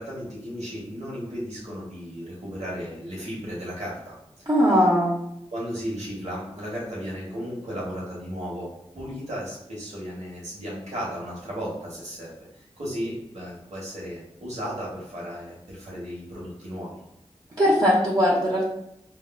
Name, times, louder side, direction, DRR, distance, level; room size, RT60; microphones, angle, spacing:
voice 1, 0.0-4.1 5.5-8.7 8.9-17.0, equal, 80° right, -5 dB, 1.1 m, -35 dB
voice 2, 4.5-5.1 17.6-18.6, equal, 40° right, -7 dB, 0.8 m, -19 dB
4.7 x 2.1 x 2.2 m, 0.80 s
cardioid pair, 40°, 11 cm